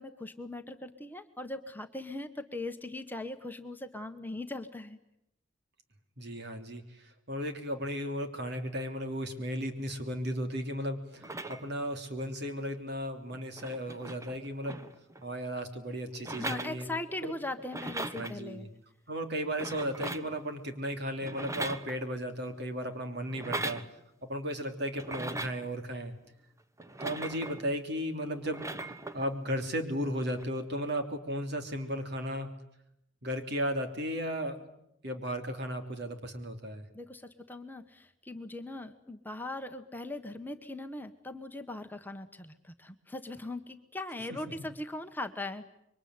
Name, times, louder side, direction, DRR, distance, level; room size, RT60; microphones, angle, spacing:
voice 1, 0.0-5.0 16.4-18.7 36.9-45.7, left 2 dB, 10° left, 6 dB, 1.2 m, -40 dB
voice 2, 6.2-14.8 15.2-16.9 17.2-17.3 18.1-18.7 19.1-23.8 24.2-26.1 27.0-28.6 29.1-32.5 33.2-36.9 44.3-44.7, equal, 55° right, 6 dB, 3.3 m, -35 dB
sound 1, 11.2-11.9 13.0-13.1 13.3-15.3 16.2-17.2 17.5-18.4 19.4-20.4 21.2-22.3 23.3-23.9 24.9-25.7 26.8-27.7 28.4-29.3 30.3-30.4, right 2 dB, 15° right, 1.1 m, -39 dB
26.5 x 23.5 x 9.6 m, 0.80 s
head